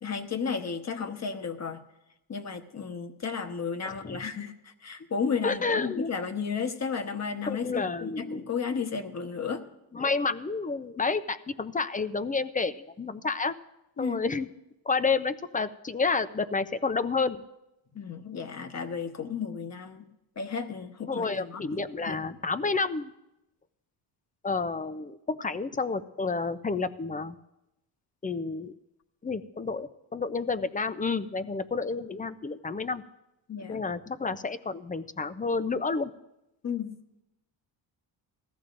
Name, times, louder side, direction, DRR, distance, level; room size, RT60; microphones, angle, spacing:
voice 1, 0.0-1.8 2.3-9.6 14.0-14.2 17.9-20.1 20.4-21.6 22.1-22.4 33.5-33.8 36.6-36.9, left 6 dB, 35° left, 7 dB, 1.1 m, -33 dB
voice 2, 3.9-4.2 5.4-6.1 7.5-8.5 9.9-13.5 14.0-14.5 14.9-17.4 21.1-23.1 24.4-27.4 28.2-28.7 29.2-33.0 33.7-36.1, left 4 dB, 20° left, 12 dB, 0.5 m, -30 dB
20.0 x 14.5 x 2.6 m, 0.91 s
cardioid pair, 105°, 47 cm